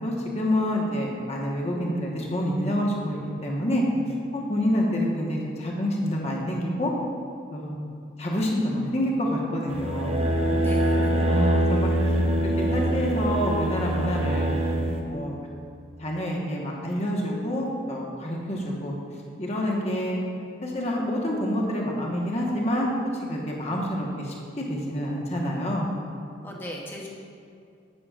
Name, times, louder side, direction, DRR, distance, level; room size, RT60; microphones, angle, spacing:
voice 1, 0.0-3.8 4.3-6.9 7.5-7.7 8.2-10.2 11.3-11.9 12.7-14.6 15.0-15.3 16.0-18.9 19.4-20.2 20.6-22.9 23.2-25.9, equal, 35° left, -2 dB, 1.2 m, -27 dB
sound 1, 9.7-15.0, right 1 dB, 35° right, 0.6 m, -24 dB
voice 2, 10.5-11.1 26.4-27.1, equal, 10° left, -2 dB, 0.9 m, -36 dB
11.0 x 8.5 x 2.5 m, 2.4 s
head